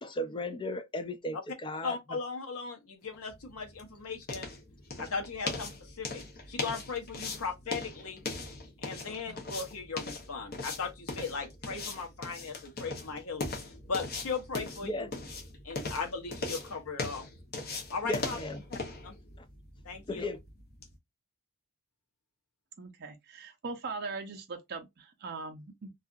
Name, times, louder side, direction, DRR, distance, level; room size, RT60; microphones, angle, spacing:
voice 1, 0.0-2.0 9.1-9.4 14.8-15.1 18.0-18.6 20.1-20.4, left 1 dB, 20° left, 0.4 m, -36 dB
voice 2, 1.8-4.5 5.0-8.2 8.8-13.5 13.9-15.1 15.6-17.3 17.9-18.4 18.7-19.2 19.8-20.3, left 5 dB, 75° left, 0.8 m, -38 dB
sound 1, 3.1-20.9, left 3 dB, 45° left, 0.8 m, -40 dB
voice 3, 22.8-25.9, right 4 dB, 45° right, 0.5 m, -40 dB
2.7 x 2.4 x 2.3 m
head